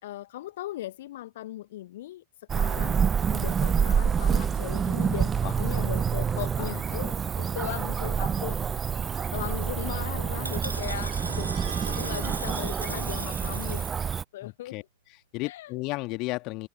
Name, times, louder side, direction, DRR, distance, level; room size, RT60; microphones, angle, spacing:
voice 1, 0.0-3.1 3.3-8.8 9.3-14.8 15.4-15.7, left 14 dB, 55° left, 1.2 m, -38 dB
Cricket / Motor vehicle (road), 2.5-14.2, right 7 dB, 20° right, 0.6 m, -27 dB
voice 2, 5.4-5.8 6.6-7.0 14.4-14.8 15.1-16.7, left 23 dB, 40° left, 2.1 m, -35 dB
sound 1, 9.3-13.9, right 2 dB, 80° right, 4.6 m, -40 dB
sound 2, 9.8-13.8, right 16 dB, 55° right, 6.7 m, -48 dB
figure-of-eight pair, 90°, 0 cm